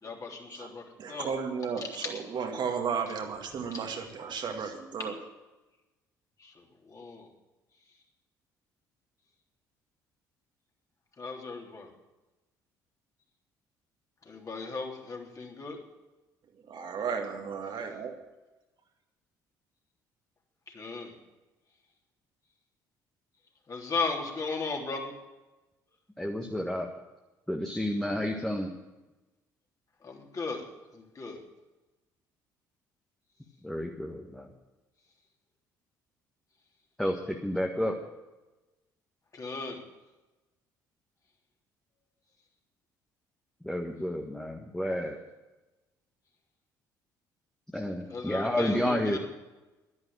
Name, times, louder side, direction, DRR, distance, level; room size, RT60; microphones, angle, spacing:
voice 1, 0.0-0.8 1.1-1.3 3.7-3.8 6.4-7.3 11.2-11.9 14.3-15.8 20.7-21.1 23.7-25.1 30.0-30.6 30.9-31.4 39.3-39.8 48.1-49.2, left 4 dB, 35° left, 0 dB, 3.5 m, -36 dB
voice 2, 0.5-5.2 16.7-18.2, right 6 dB, 50° right, 3 dB, 2.1 m, -34 dB
voice 3, 26.2-26.9 27.5-28.7 33.6-34.5 37.0-38.0 43.6-45.2 47.7-49.2, left 1 dB, 5° left, 2 dB, 1.6 m, -30 dB
12.0 x 11.0 x 9.0 m, 1.1 s
figure-of-eight pair, 50°, 10 cm